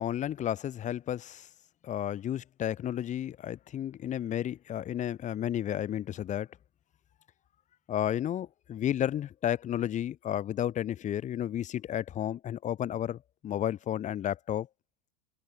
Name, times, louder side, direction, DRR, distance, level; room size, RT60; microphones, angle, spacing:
voice 1, 0.0-1.5 1.8-6.5 7.9-14.7, left 11 dB, 35° left, 6.3 m, -32 dB
hypercardioid pair, 105°, 20 cm